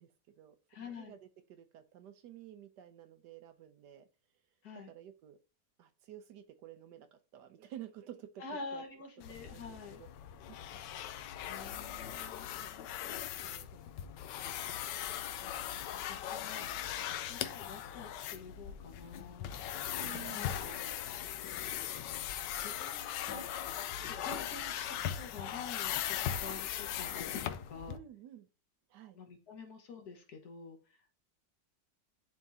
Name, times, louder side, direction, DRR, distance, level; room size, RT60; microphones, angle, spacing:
voice 1, 0.0-4.1 4.9-5.4 5.8-8.4 8.7-8.8 9.4-10.1 10.5-10.8 13.0-13.1 13.4-13.8 15.9-16.0 17.4-17.5 20.0-20.6 24.4-24.5 27.9-28.5 28.9-29.2, right 11 dB, 70° right, 9 dB, 1.2 m, -52 dB
voice 2, 0.7-1.1 4.6-4.9 8.4-10.0 11.5-12.5 15.4-19.5 20.3-21.1 22.6-23.5 24.0-28.0 29.1-30.8, left 4 dB, 55° left, 3 dB, 1.8 m, -48 dB
sound 1, 9.2-28.0, left 10 dB, 75° left, 1.2 m, -39 dB
11.0 x 3.6 x 2.7 m, 0.31 s
omnidirectional pair, 2.0 m